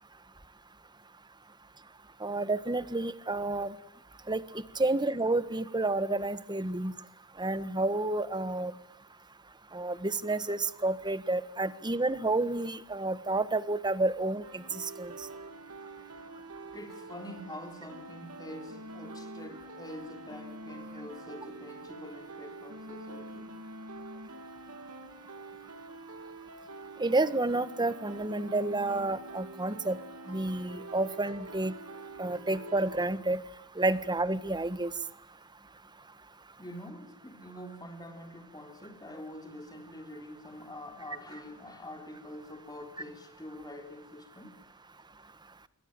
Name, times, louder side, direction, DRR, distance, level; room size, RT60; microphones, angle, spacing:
voice 1, 2.2-3.7 4.3-4.4 4.8-6.9 7.4-8.7 9.7-15.1 27.0-30.0 30.3-31.7 32.2-33.4 33.8-34.9, right 2 dB, 20° right, 1.4 m, -30 dB
sound 1, 14.4-33.1, right 2 dB, 80° right, 3.2 m, -46 dB
voice 2, 15.2-15.5 16.7-23.5 24.5-24.6 36.6-44.6, left 1 dB, 20° left, 3.5 m, -46 dB
26.5 x 24.0 x 9.1 m
head